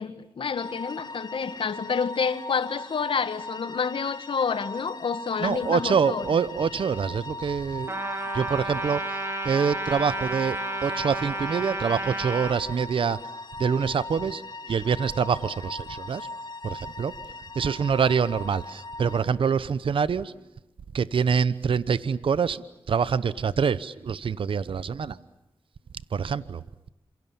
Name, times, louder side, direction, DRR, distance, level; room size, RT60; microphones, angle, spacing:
voice 1, 0.0-6.2, left 6 dB, 70° left, 2.0 m, -28 dB
sound 1, 0.5-19.2, left 2 dB, 45° left, 2.3 m, -39 dB
voice 2, 5.4-8.0 8.3-9.2 9.4-13.2 13.6-16.3 16.6-17.2 17.5-20.3 20.9-25.2 26.1-26.6, right 6 dB, 70° right, 0.9 m, -25 dB
Trumpet, 7.9-12.6, right 2 dB, 25° right, 4.7 m, -31 dB
29.5 x 27.5 x 7.1 m
cardioid pair, 70°, 9 cm